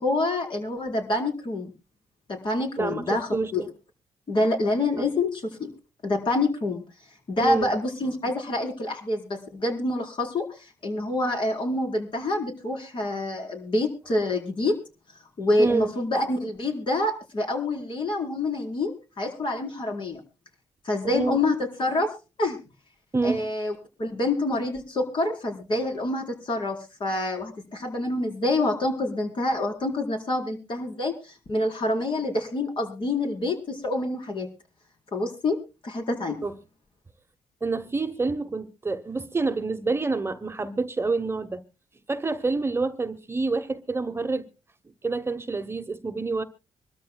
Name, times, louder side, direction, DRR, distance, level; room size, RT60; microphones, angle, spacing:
voice 1, 0.0-1.7 2.3-3.6 4.3-5.7 6.0-6.8 7.3-10.5 10.8-14.8 15.4-20.2 20.8-22.1 22.4-22.6 23.2-23.7 24.0-34.5 35.1-35.6 35.8-36.4, left 2 dB, 50° left, 4.4 m, -27 dB
voice 2, 2.8-3.7 5.0-5.1 7.4-7.7 15.6-15.9 21.0-21.4 23.1-23.5 36.4-36.5 37.6-41.6 42.1-44.5 45.0-46.4, right 3 dB, 20° right, 1.1 m, -27 dB
25.5 x 13.0 x 2.3 m
cardioid pair, 80°, 11 cm